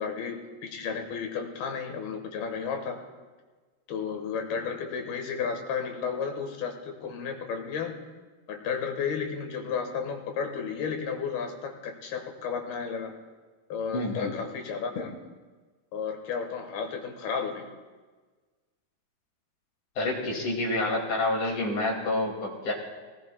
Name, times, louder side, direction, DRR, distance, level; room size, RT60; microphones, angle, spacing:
voice 1, 0.0-3.0 3.9-7.9 8.5-13.2 13.7-15.2 15.9-17.7 21.1-21.2, left 6 dB, 75° left, 4 dB, 3.1 m, -33 dB
voice 2, 13.9-14.3 20.0-22.7, left 2 dB, 50° left, -1 dB, 3.5 m, -28 dB
23.5 x 18.0 x 2.3 m, 1.4 s
omnidirectional pair, 4.6 m